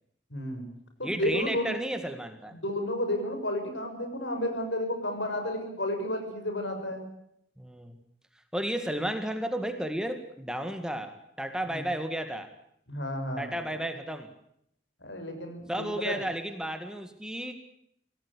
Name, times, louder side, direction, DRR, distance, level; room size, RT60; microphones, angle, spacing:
voice 1, 0.3-0.6 1.0-1.7 2.5-7.1 11.7-11.8 12.9-13.8 15.0-16.2, left 1 dB, 80° left, 5 dB, 6.6 m, -32 dB
voice 2, 1.0-2.6 7.6-8.0 8.5-12.5 13.4-14.3 15.7-17.5, right 1 dB, 5° right, 7 dB, 1.8 m, -33 dB
25.5 x 17.5 x 8.4 m, 0.74 s
head